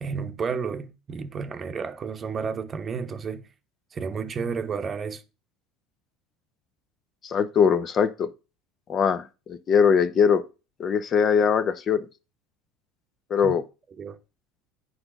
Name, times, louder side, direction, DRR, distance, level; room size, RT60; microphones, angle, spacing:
voice 1, 0.0-3.5 3.9-5.2 13.4-13.6 14.0-14.2, right 5 dB, 30° right, 0.9 m, -31 dB
voice 2, 7.2-8.3 8.9-10.4 10.8-12.0 13.3-13.6, left 6 dB, 40° left, 0.7 m, -21 dB
7.8 x 4.1 x 5.9 m
supercardioid pair, 110°, 0 cm